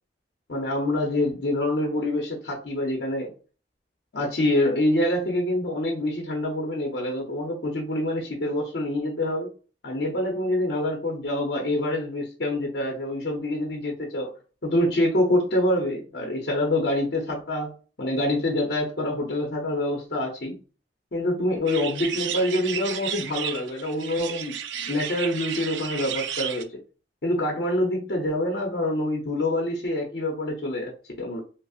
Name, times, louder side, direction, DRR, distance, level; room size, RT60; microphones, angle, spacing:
voice 1, 0.5-3.3 4.1-9.5 9.8-14.4 14.6-17.7 18.0-20.6 21.1-24.6 24.8-26.8 27.2-31.4, left 1 dB, 60° left, 0.7 m, -26 dB
sound 1, 21.7-26.6, right 9 dB, 85° right, 0.4 m, -33 dB
5.2 x 2.0 x 2.4 m
head